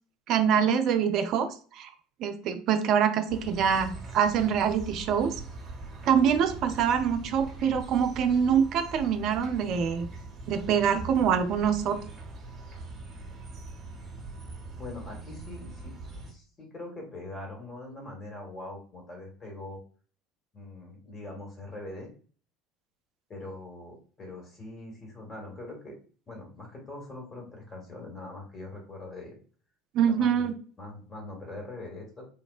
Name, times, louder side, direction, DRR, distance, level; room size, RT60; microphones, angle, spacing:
voice 1, 0.3-1.5 1.7-1.9 2.2-5.3 6.1-10.1 10.5-12.0 29.9-30.5, right 7 dB, 50° right, 8 dB, 0.4 m, -25 dB
sound 1, 3.3-16.3, right 3 dB, 35° right, 0.8 m, -42 dB
voice 2, 14.8-15.9 16.3-19.8 20.5-22.1 23.3-26.0 26.3-29.4 30.0-30.5 30.8-32.3, left 2 dB, 30° left, 0 dB, 1.2 m, -42 dB
3.4 x 2.1 x 2.3 m, 0.41 s
figure-of-eight pair, 70°, 0 cm